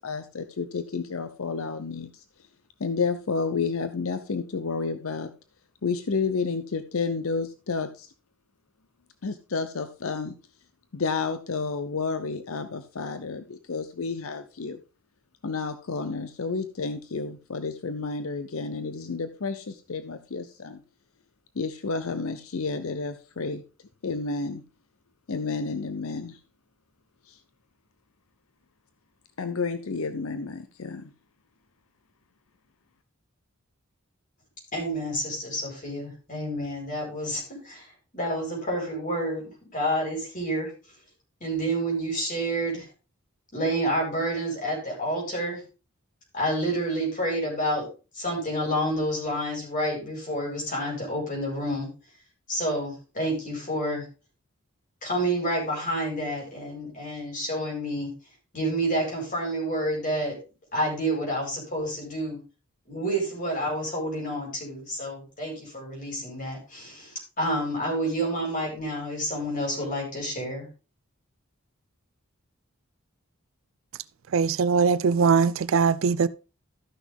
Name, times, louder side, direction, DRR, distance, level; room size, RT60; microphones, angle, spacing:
voice 1, 0.0-2.1 2.8-5.3 5.8-8.1 9.2-10.3 10.9-14.8 15.4-20.8 21.6-23.6 24.0-24.6 25.3-26.4 27.3-27.4 29.4-31.1, left 4 dB, 75° left, 0.7 m, -30 dB
voice 2, 34.7-40.9 41.4-42.9 43.5-45.6 46.3-47.9 48.1-51.9 52.5-54.1 55.0-58.1 58.5-60.4 60.7-62.4 62.9-70.7, right 1 dB, 40° left, 4.7 m, -29 dB
voice 3, 74.3-76.3, right 5 dB, 65° right, 0.4 m, -21 dB
13.5 x 6.1 x 3.5 m
head